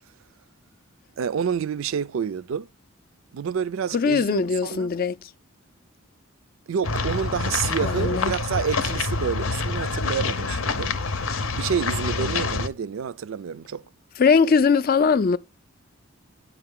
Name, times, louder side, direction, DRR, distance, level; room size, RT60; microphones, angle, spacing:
voice 1, 1.2-2.7 3.3-4.9 6.7-10.9 11.5-13.9, right 7 dB, 70° right, 0.4 m, -28 dB
voice 2, 3.9-5.3 7.8-8.3 14.2-15.4, left 5 dB, 40° left, 0.4 m, -20 dB
sound 1, 6.8-12.7, left 3 dB, 70° left, 0.7 m, -27 dB
8.9 x 5.7 x 3.6 m
head